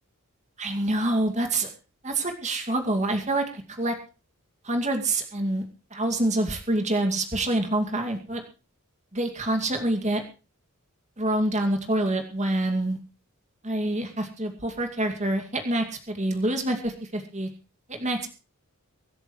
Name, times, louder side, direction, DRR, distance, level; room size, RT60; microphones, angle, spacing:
voice 1, 0.6-1.7 2.0-4.0 4.6-5.6 5.9-8.4 9.1-10.2 11.2-13.0 13.6-17.5 17.9-18.3, right 1 dB, 30° right, 4 dB, 2.4 m, -26 dB
24.5 x 11.0 x 3.2 m, 0.33 s
head